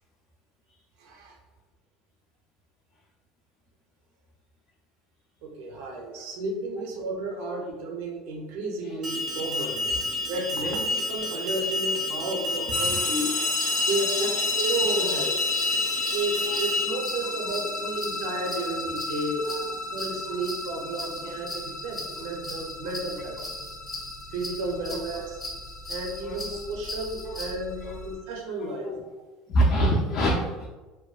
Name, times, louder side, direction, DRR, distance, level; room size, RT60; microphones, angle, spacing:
voice 1, 1.0-1.4 5.4-9.8 10.3-13.3 13.9-15.4 16.1-19.5 19.9-23.4 24.3-25.5 25.9-29.0, right 2 dB, 80° right, 1 dB, 0.5 m, -32 dB
Alarm, 9.0-16.8, left 2 dB, 25° right, 0.4 m, -29 dB
voice 2, 12.6-13.0 14.2-14.3 15.0-15.2 16.5-16.6 17.2-17.3 18.7-18.8 19.5-19.7 20.3-20.4 21.0-21.3 24.9-25.0 26.2-26.4 27.3-27.4 27.8-28.0 28.9-29.0 29.5-30.7, right 1 dB, 45° left, -1 dB, 0.3 m, -27 dB
sound 1, 12.7-28.1, left 3 dB, 85° left, 0.6 m, -33 dB
sound 2, 13.5-27.5, left 2 dB, 15° left, 0.7 m, -39 dB
2.4 x 2.2 x 2.3 m, 1.2 s
cardioid pair, 135°, 0 cm